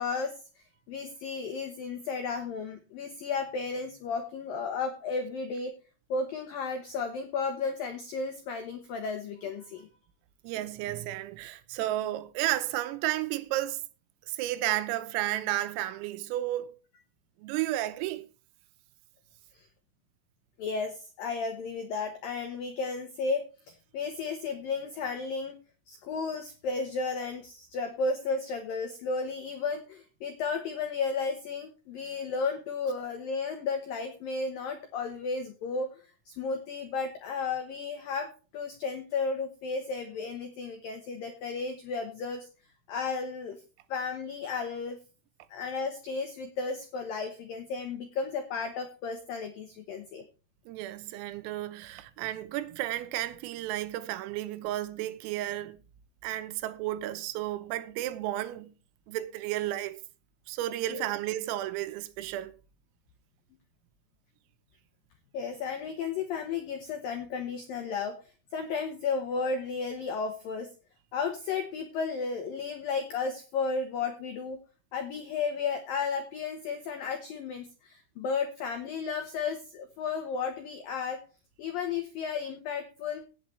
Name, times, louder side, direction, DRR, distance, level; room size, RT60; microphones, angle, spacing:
voice 1, 0.0-5.7 6.1-9.9 19.5-19.7 20.6-25.6 25.9-42.5 42.9-43.6 43.9-45.0 45.5-50.2 60.9-61.1 65.3-68.2 68.5-70.7 71.1-74.6 74.9-81.2 81.6-83.2, left 4 dB, 85° left, 2.0 m, -33 dB
voice 2, 10.4-13.8 14.3-16.8 17.4-18.3 50.7-55.8 56.2-58.7 59.1-60.0 60.5-62.6, right 14 dB, 85° right, 3.6 m, -32 dB
17.5 x 7.6 x 3.2 m
omnidirectional pair, 5.9 m